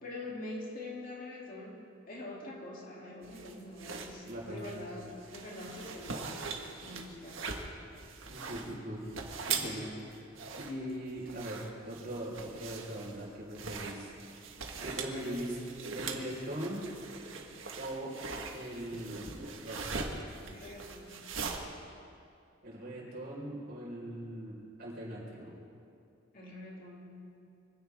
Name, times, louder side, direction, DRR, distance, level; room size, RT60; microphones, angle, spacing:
voice 1, 0.0-7.6 20.4-21.3 26.3-27.3, left 2 dB, 45° left, -3 dB, 2.9 m, -45 dB
sound 1, 3.2-21.6, right 4 dB, 80° right, 1.6 m, -42 dB
voice 2, 4.3-4.7 8.3-9.0 9.5-10.3 10.6-11.6 11.8-14.1 14.8-15.6 15.9-16.8 17.8-18.1 18.5-19.3 19.6-19.8 22.6-25.6, right 1 dB, 50° right, -4 dB, 4.8 m, -40 dB
24.0 x 16.0 x 3.6 m, 2.5 s
head